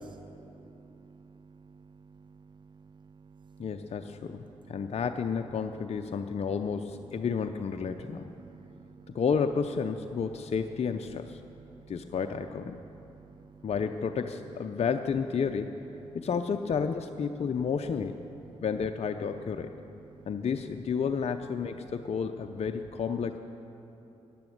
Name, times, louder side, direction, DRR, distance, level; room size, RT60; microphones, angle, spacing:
voice 1, 0.0-1.3 3.5-3.6 8.4-9.2, right 2 dB, 35° right, 13 dB, 0.4 m, -50 dB
voice 2, 3.6-8.3 9.1-11.4 11.9-12.8 13.6-15.8 16.1-18.2 18.6-19.7 20.3-23.4, left 6 dB, 55° left, 6 dB, 0.6 m, -31 dB
14.0 x 11.0 x 7.8 m, 2.9 s
supercardioid pair, 50°, 13 cm